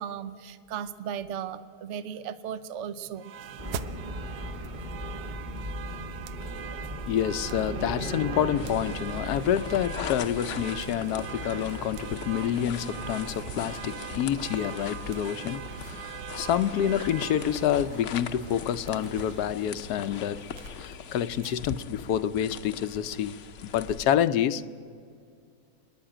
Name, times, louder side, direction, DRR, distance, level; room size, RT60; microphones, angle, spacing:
voice 1, 0.0-3.3, right 8 dB, 55° right, 1.0 m, -36 dB
sound 1, 3.2-21.5, right 9 dB, 75° right, 1.2 m, -42 dB
sound 2, 3.6-20.8, equal, 20° right, 1.7 m, -40 dB
voice 2, 6.9-20.5 20.7-24.6, left 10 dB, 80° left, 1.2 m, -28 dB
sound 3, 8.5-24.0, left 7 dB, 60° left, 0.9 m, -40 dB
29.0 x 11.0 x 8.8 m
omnidirectional pair, 1.7 m